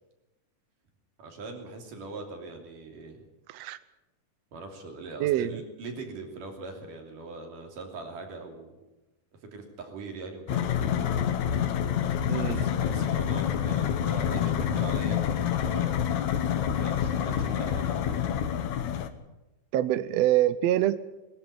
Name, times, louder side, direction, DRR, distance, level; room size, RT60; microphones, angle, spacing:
voice 1, 1.2-3.2 4.5-8.7 9.4-11.0 12.3-16.2 16.8-18.2, right 3 dB, 85° right, 3 dB, 4.7 m, -41 dB
voice 2, 5.2-5.6 12.3-12.6 19.7-21.0, right 13 dB, 70° right, 14 dB, 1.7 m, -25 dB
sound 1, 10.5-19.1, left 9 dB, 70° left, 2.5 m, -27 dB
21.5 x 13.0 x 9.8 m, 1.0 s
omnidirectional pair, 3.6 m